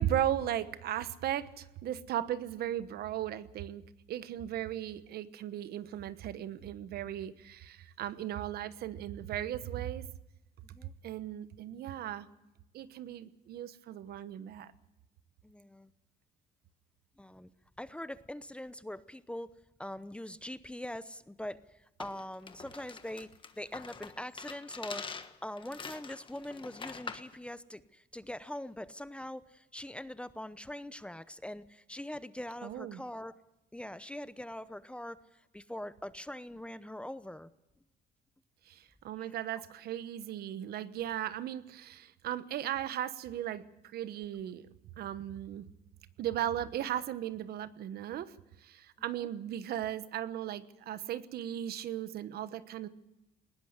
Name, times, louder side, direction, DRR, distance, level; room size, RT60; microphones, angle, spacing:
voice 1, 0.0-3.8 4.1-10.1 11.0-12.3 12.7-14.7 32.6-33.0 38.7-43.6 43.9-44.7 45.0-45.6 46.2-48.3 48.6-52.9, right 11 dB, 65° right, 14 dB, 1.1 m, -36 dB
voice 2, 15.4-15.9 17.2-17.5 17.8-19.5 19.8-23.3 23.5-25.1 25.4-33.3 33.7-37.5 39.5-39.6 49.1-49.3, left 1 dB, 5° left, 14 dB, 0.8 m, -43 dB
sound 1, 22.0-27.3, left 5 dB, 30° left, 1.4 m, -45 dB
20.0 x 17.0 x 8.1 m, 0.92 s
cardioid pair, 110°, 17 cm